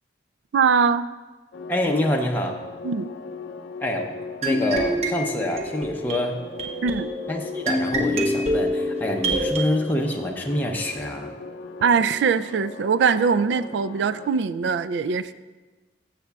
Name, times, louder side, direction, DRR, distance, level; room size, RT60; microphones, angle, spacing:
voice 1, 0.5-1.1 2.8-3.1 6.8-7.1 11.8-15.3, right 5 dB, 85° right, 15 dB, 0.3 m, -22 dB
sound 1, 1.5-14.3, left 3 dB, 85° left, 0.5 m, -39 dB
voice 2, 1.7-2.6 3.8-4.1 4.4-6.4 7.3-11.3, left 1 dB, 10° left, 0 dB, 0.6 m, -26 dB
sound 2, 4.4-9.7, equal, 40° right, 0.9 m, -26 dB
14.0 x 7.1 x 2.3 m, 1.2 s
head